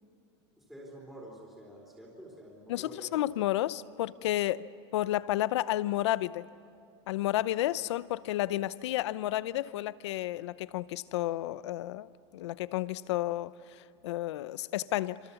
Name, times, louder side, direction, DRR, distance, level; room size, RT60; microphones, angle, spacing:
voice 1, 0.6-3.2, equal, ahead, -3 dB, 3.7 m, -48 dB
voice 2, 2.7-4.6 4.9-6.4 7.1-15.2, left 14 dB, 85° left, 17 dB, 0.7 m, -31 dB
27.5 x 26.5 x 7.1 m, 2.5 s
supercardioid pair, 170°, 14 cm